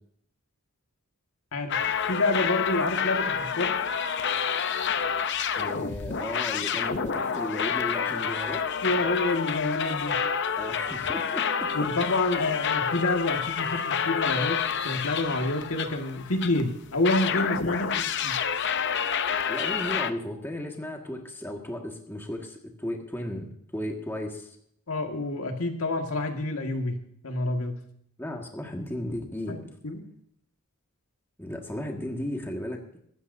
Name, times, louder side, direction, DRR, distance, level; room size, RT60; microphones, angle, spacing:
sound 1, 1.7-16.6 17.0-20.1, left 7 dB, 50° left, 0.7 m, -28 dB
voice 1, 2.1-3.7 8.8-10.2 11.7-18.4 24.9-27.0 27.2-27.8 29.5-29.6 29.8-30.0, left 2 dB, 75° left, 3 dB, 1.9 m, -28 dB
voice 2, 5.6-8.7 10.6-11.5 11.8-11.9 17.8-18.0 19.4-24.6 28.2-29.7 31.4-33.0, left 1 dB, 10° left, 1 dB, 1.8 m, -35 dB
24.5 x 13.0 x 2.7 m, 0.67 s
head